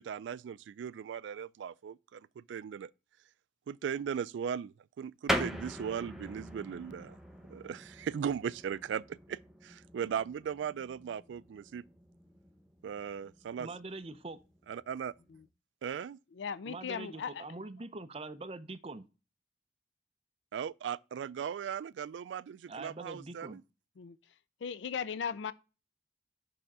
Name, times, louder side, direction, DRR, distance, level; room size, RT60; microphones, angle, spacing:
voice 1, 0.0-2.9 3.7-7.2 7.5-11.8 12.8-13.7 14.7-15.1 15.8-16.2 20.5-23.6, right 7 dB, 90° right, 0.3 m, -38 dB
sound 1, 5.3-15.5, equal, ahead, 0.8 m, -42 dB
voice 2, 13.6-14.4 16.7-19.0 22.7-23.6, right 3 dB, 35° right, 0.6 m, -43 dB
voice 3, 16.3-17.4 24.0-24.2 24.6-25.5, left 6 dB, 90° left, 0.4 m, -37 dB
6.8 x 3.6 x 5.4 m
head